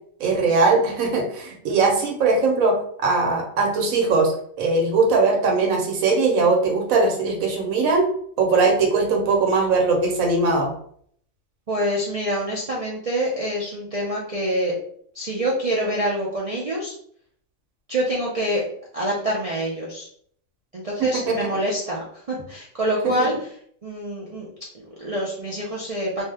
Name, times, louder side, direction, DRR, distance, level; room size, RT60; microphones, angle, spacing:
voice 1, 0.2-4.3 4.6-8.1 8.4-10.7 21.0-21.5 23.0-23.1, right 3 dB, 90° right, 2 dB, 1.2 m, -20 dB
voice 2, 11.7-14.7 15.1-16.9 17.9-18.6 18.9-20.1 20.7-23.6 23.8-24.5 24.7-26.2, right 1 dB, 60° right, -5 dB, 0.3 m, -26 dB
2.7 x 2.1 x 3.4 m, 0.62 s
omnidirectional pair, 1.4 m